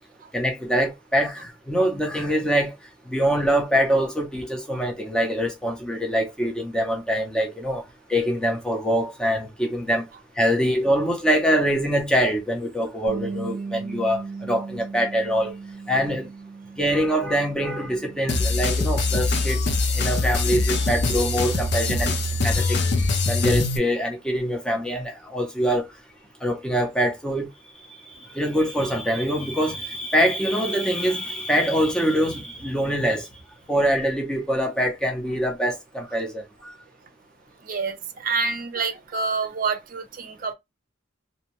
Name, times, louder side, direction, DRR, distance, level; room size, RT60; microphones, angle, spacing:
voice 1, 0.3-2.8 3.1-7.8 8.1-10.1 10.4-15.5 15.9-16.3 16.8-19.6 19.9-22.2 22.4-22.8 23.2-25.9 26.4-27.5 28.3-33.3 33.7-36.7, equal, 5° left, 0.6 m, -24 dB
Bass guitar, 13.1-19.3, right 4 dB, 25° right, 0.9 m, -37 dB
sound 1, 18.3-23.8, left 3 dB, 60° left, 0.6 m, -23 dB
voice 2, 37.6-40.5, right 4 dB, 45° right, 0.6 m, -27 dB
2.6 x 2.2 x 2.9 m
head